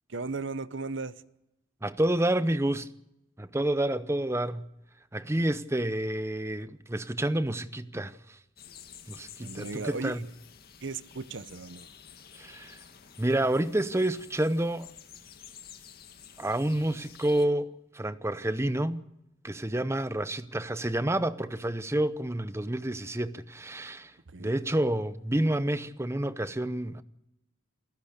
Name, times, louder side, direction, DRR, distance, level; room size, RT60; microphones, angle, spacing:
voice 1, 0.1-1.1 9.4-10.3 10.8-11.9 24.3-24.5, right 4 dB, 60° right, 0.8 m, -36 dB
voice 2, 1.8-2.9 3.4-4.7 5.1-8.1 9.1-10.2 12.4-12.8 13.2-14.9 16.4-19.0 19.4-24.1 24.4-27.0, right 1 dB, 15° right, 0.7 m, -29 dB
sound 1, 8.6-17.5, left 8 dB, 45° left, 1.9 m, -51 dB
27.5 x 14.5 x 6.6 m
head